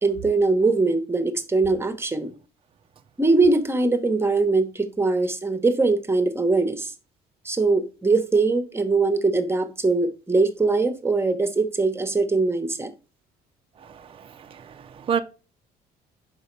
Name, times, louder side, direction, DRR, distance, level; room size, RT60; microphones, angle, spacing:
voice 1, 0.0-2.3 3.2-6.9 7.4-12.9, right 3 dB, 15° right, 0.9 m, -22 dB
voice 2, 13.8-15.2, right 7 dB, 30° right, 0.5 m, -30 dB
5.5 x 4.8 x 4.5 m
cardioid pair, 110°, 17 cm